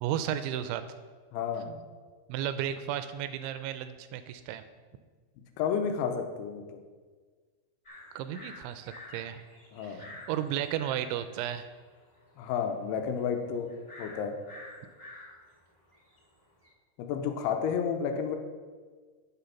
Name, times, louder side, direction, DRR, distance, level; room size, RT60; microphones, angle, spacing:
voice 1, 0.0-0.8 2.3-4.6 8.2-9.4 9.8-11.7, right 10 dB, 85° right, 10 dB, 2.8 m, -33 dB
voice 2, 1.3-1.8 5.6-6.8 9.7-10.2 12.4-13.7 14.0-14.4 17.0-18.4, left 7 dB, 85° left, 5 dB, 3.0 m, -31 dB
sound 1, 7.8-16.7, left 2 dB, 20° left, 1.2 m, -50 dB
9.2 x 6.7 x 5.8 m, 1.5 s
omnidirectional pair, 5.6 m